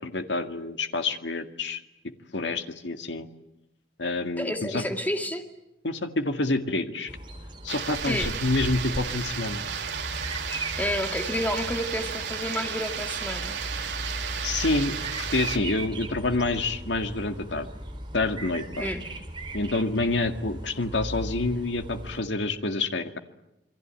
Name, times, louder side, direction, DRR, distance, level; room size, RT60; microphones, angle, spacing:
voice 1, 0.0-1.8 2.3-3.3 4.0-4.8 5.8-7.1 7.6-9.6 14.4-17.7 18.1-18.9 19.5-23.2, left 2 dB, 85° left, 7 dB, 2.0 m, -28 dB
voice 2, 4.4-5.4 8.1-8.3 10.8-13.6 18.8-19.0, left 1 dB, 10° left, 5 dB, 2.2 m, -30 dB
Bird vocalization bird call bird song, 7.1-22.2, right 1 dB, 25° right, 3.9 m, -37 dB
sound 1, 7.7-15.6, right 7 dB, 75° right, 2.8 m, -33 dB
27.5 x 23.0 x 8.9 m, 0.87 s
head